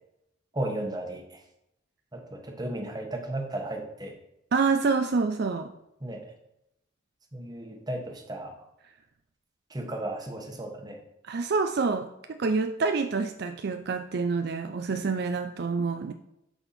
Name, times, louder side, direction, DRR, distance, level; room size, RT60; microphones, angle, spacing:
voice 1, 0.5-1.4 2.1-4.1 6.0-6.3 7.3-8.5 9.7-11.0, right 1 dB, 20° right, 2 dB, 1.2 m, -34 dB
voice 2, 4.5-5.7 11.3-16.1, right 4 dB, 55° right, 7 dB, 0.4 m, -27 dB
12.0 x 4.4 x 4.3 m, 0.84 s
head